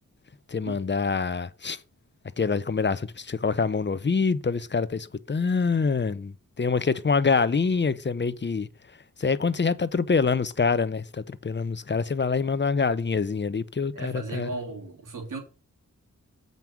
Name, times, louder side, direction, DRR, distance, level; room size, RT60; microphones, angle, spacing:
voice 1, 0.5-1.8 2.4-8.7 9.2-14.5, left 5 dB, 35° left, 0.8 m, -25 dB
voice 2, 13.9-15.4, right 3 dB, 85° right, 2.8 m, -35 dB
7.5 x 5.4 x 6.0 m
cardioid pair, 50°, 31 cm